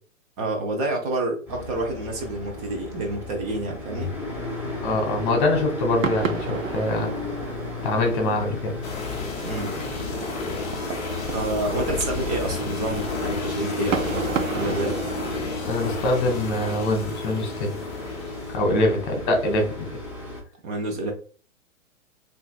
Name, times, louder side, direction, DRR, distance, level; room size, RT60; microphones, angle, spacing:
voice 1, 0.4-4.1 9.4-9.9 11.3-14.1 14.5-15.0 18.7-18.8 20.6-21.1, right 2 dB, 30° right, 0.8 m, -28 dB
sound 1, 1.5-20.4, left 2 dB, 5° right, 1.8 m, -34 dB
voice 2, 4.8-7.1 7.8-8.7 15.7-17.7 18.5-20.0, left 1 dB, 35° left, 1.2 m, -24 dB
sound 2, 6.0-15.4, right 6 dB, 75° right, 0.7 m, -33 dB
sound 3, 8.8-18.6, left 4 dB, 15° left, 0.6 m, -33 dB
5.4 x 2.7 x 2.3 m
figure-of-eight pair, 115°, 40 cm